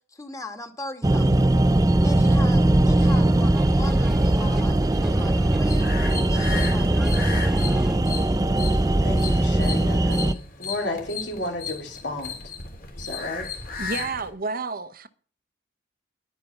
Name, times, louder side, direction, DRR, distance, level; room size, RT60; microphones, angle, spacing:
voice 1, 0.1-1.5 2.0-5.9 6.3-7.5, left 2 dB, 20° left, 1.9 m, -39 dB
sound 1, 1.0-10.3, right 1 dB, 20° right, 0.6 m, -20 dB
sound 2, 2.9-8.0, equal, 5° right, 1.0 m, -38 dB
sound 3, 5.7-14.3, left 6 dB, 55° left, 3.4 m, -36 dB
voice 2, 9.0-12.4 13.0-13.5, left 1 dB, 70° left, 3.5 m, -32 dB
voice 3, 13.8-15.1, right 4 dB, 55° right, 0.9 m, -30 dB
11.0 x 9.9 x 6.0 m
head